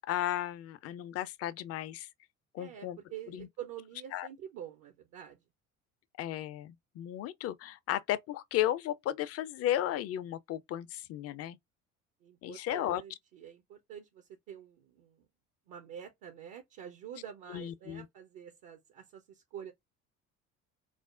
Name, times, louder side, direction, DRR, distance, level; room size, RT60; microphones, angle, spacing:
voice 1, 0.1-2.1 2.5-3.0 3.3-3.5 4.1-4.3 6.2-11.6 12.4-13.0 17.5-18.1, left 13 dB, 40° left, 0.5 m, -34 dB
voice 2, 2.6-5.4 12.2-15.2 15.7-19.7, right 9 dB, 55° right, 0.8 m, -47 dB
4.9 x 2.1 x 2.4 m
figure-of-eight pair, 55°, 39 cm